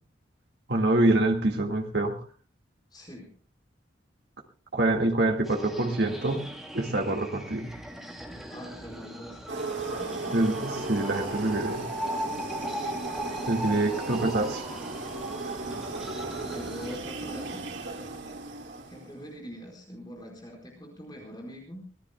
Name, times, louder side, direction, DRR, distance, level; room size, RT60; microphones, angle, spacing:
voice 1, 0.7-2.2 4.7-7.7 10.3-11.8 13.5-14.6, right 2 dB, 65° right, 3 dB, 1.9 m, -26 dB
voice 2, 2.9-3.3 8.5-9.6 10.0-10.5 13.9-14.2 16.5-17.7 18.9-21.9, equal, 25° left, 0 dB, 4.5 m, -43 dB
sound 1, 5.4-17.0, equal, ahead, 2.7 m, -39 dB
sound 2, 9.5-19.3, right 3 dB, 85° right, 2.6 m, -36 dB
24.5 x 18.0 x 2.2 m, 0.40 s
head